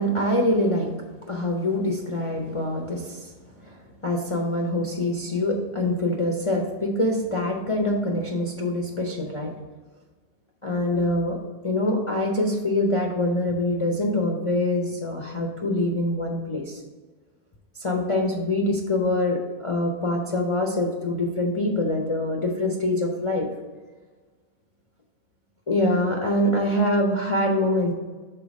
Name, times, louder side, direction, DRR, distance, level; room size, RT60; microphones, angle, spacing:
voice 1, 0.0-9.6 10.6-16.8 17.8-23.5 25.7-27.9, left 1 dB, 50° left, 0 dB, 0.3 m, -25 dB
5.6 x 4.0 x 5.2 m, 1.4 s
omnidirectional pair, 1.6 m